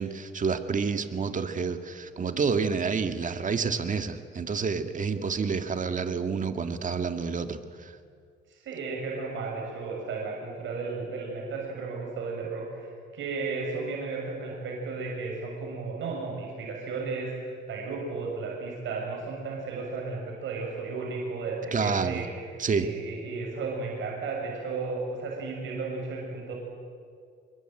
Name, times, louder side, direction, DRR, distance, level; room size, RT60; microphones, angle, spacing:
voice 1, 0.0-7.9 21.7-22.2 22.6-22.9, right 5 dB, 40° right, 8 dB, 2.0 m, -29 dB
voice 2, 8.5-22.4 22.7-26.5, right 4 dB, 75° right, -1 dB, 6.6 m, -34 dB
26.0 x 22.0 x 9.1 m, 2.2 s
cardioid pair, 90°, 20 cm